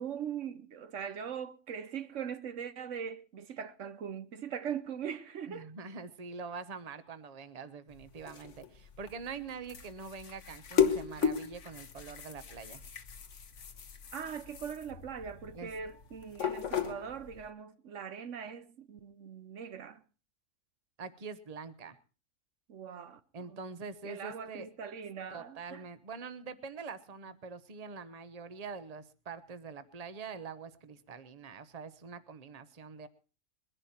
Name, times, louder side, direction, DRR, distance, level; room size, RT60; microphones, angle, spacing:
voice 1, 0.0-5.7 14.1-20.0 22.7-23.2 23.5-23.6 24.0-25.8, right 7 dB, 75° right, 1.3 m, -41 dB
voice 2, 5.5-12.9 15.5-15.7 21.0-22.0 23.3-24.7 25.3-33.1, right 5 dB, 35° right, 1.0 m, -44 dB
sound 1, 7.9-17.5, left 7 dB, 70° left, 1.5 m, -36 dB
21.5 x 11.0 x 4.3 m
omnidirectional pair, 1.3 m